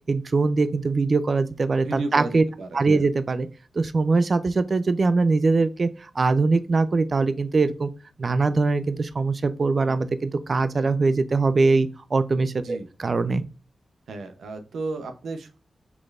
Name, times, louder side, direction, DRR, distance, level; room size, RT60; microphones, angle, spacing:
voice 1, 0.1-2.4 2.7-3.5 3.8-7.9 8.2-13.4, right 3 dB, 55° right, 13 dB, 0.4 m, -22 dB
voice 2, 1.8-3.1 12.6-12.9 14.1-15.6, right 3 dB, 90° right, 8 dB, 0.7 m, -33 dB
6.0 x 3.2 x 2.4 m, 0.34 s
cardioid pair, 50°, 0 cm